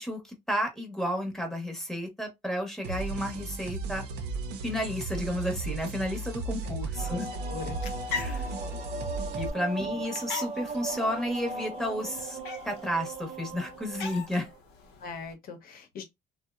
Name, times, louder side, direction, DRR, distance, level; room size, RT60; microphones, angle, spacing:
voice 1, 0.0-4.0 4.6-7.3 8.1-8.5 9.4-12.4 12.6-14.5, equal, 5° left, 0.8 m, -32 dB
sound 1, 2.8-9.5, right 3 dB, 80° right, 0.5 m, -35 dB
sound 2, 7.0-14.6, right 2 dB, 40° right, 0.5 m, -38 dB
voice 2, 7.2-7.8 15.0-16.0, left 4 dB, 60° left, 0.8 m, -41 dB
sound 3, 7.5-15.3, left 5 dB, 85° left, 0.6 m, -42 dB
2.8 x 2.0 x 2.3 m
cardioid pair, 110°, 17 cm